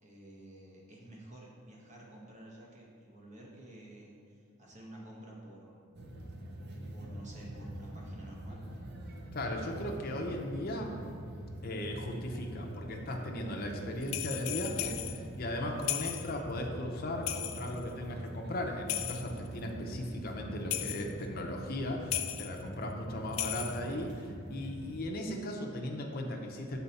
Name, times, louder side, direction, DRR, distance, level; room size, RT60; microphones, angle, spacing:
voice 1, 0.0-6.0 6.4-6.5 6.9-8.7, right 1 dB, 35° right, -3 dB, 1.1 m, -51 dB
sound 1, 5.9-25.0, right 1 dB, 50° right, 0.6 m, -44 dB
voice 2, 9.3-10.9 11.6-26.8, left 1 dB, 45° left, 1 dB, 0.6 m, -37 dB
sound 2, 14.0-15.2 15.8-16.4 17.3-17.8 18.9-19.5 20.7-21.1 22.1-22.6 23.3-23.9, left 13 dB, 80° left, 0.3 m, -36 dB
6.9 x 4.3 x 4.1 m, 2.3 s
head